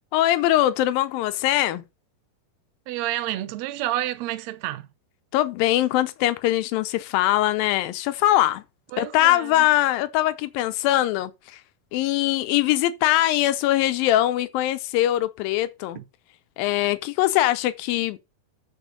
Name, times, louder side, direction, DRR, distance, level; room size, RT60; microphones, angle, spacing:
voice 1, 0.1-1.8 5.3-8.6 9.0-11.6 11.9-16.0 16.6-18.2, left 14 dB, 90° left, 2.5 m, -22 dB
voice 2, 2.9-4.9 8.9-9.7 15.9-16.0, right 14 dB, 85° right, 1.5 m, -29 dB
9.3 x 4.4 x 6.3 m
omnidirectional pair, 4.1 m